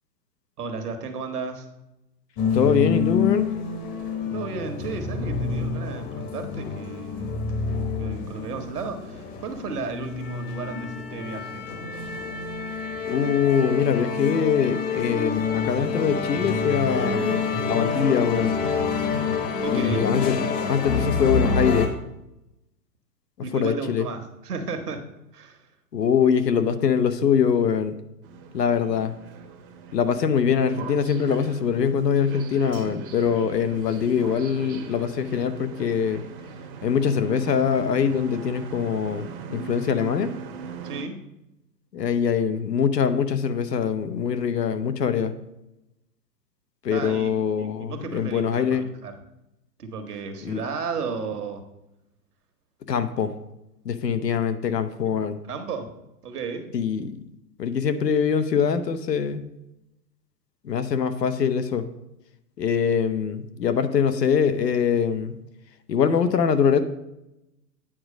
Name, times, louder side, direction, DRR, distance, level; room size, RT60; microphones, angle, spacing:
voice 1, 0.6-1.7 4.3-7.4 8.0-11.7 19.6-20.1 23.4-25.0 25.3-25.7 40.8-41.2 46.9-47.3 47.6-49.2 49.8-51.6 55.0-55.1 55.5-55.9 56.2-56.7, right 4 dB, 65° right, 6 dB, 1.4 m, -34 dB
sound 1, 2.4-21.9, left 5 dB, 30° left, 1.1 m, -27 dB
voice 2, 2.5-3.5 13.0-18.5 19.7-20.4 20.7-21.9 23.5-24.1 25.9-28.0 28.5-29.1 29.9-36.2 36.8-40.3 41.9-45.3 46.8-48.9 50.4-50.6 52.9-53.3 53.8-55.4 56.7-57.1 57.6-59.4 60.6-61.9 62.6-65.3 65.9-66.8, left 7 dB, 75° left, 10 dB, 0.9 m, -23 dB
sound 2, 28.2-41.0, right 6 dB, 35° right, 0.9 m, -40 dB
8.8 x 4.8 x 5.1 m, 0.89 s
figure-of-eight pair, 115°, 50 cm